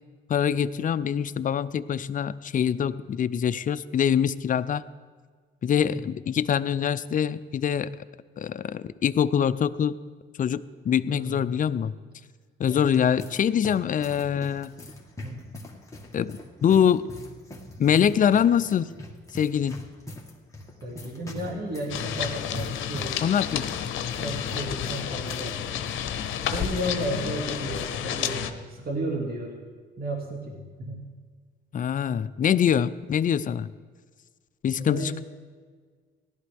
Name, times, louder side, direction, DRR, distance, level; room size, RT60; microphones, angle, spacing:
voice 1, 0.3-4.8 5.6-8.0 8.4-10.0 10.4-11.9 12.6-14.7 16.1-17.1 17.8-18.9 19.3-19.8 23.2-23.6 31.7-33.7 34.6-35.2, left 8 dB, 40° left, 14 dB, 0.5 m, -24 dB
voice 2, 11.1-11.4 12.7-13.2 15.2-15.6 20.8-23.2 23.7-23.8 24.2-25.6 26.4-29.5 30.0-31.0 34.8-35.2, right 1 dB, 50° right, -1 dB, 2.4 m, -33 dB
sound 1, 12.6-25.5 25.8-25.9 26.7-27.0, left 1 dB, 15° left, 1.9 m, -43 dB
sound 2, 21.9-28.5, left 9 dB, 80° left, 0.8 m, -31 dB
17.5 x 11.5 x 3.5 m, 1.6 s
cardioid pair, 90°, 20 cm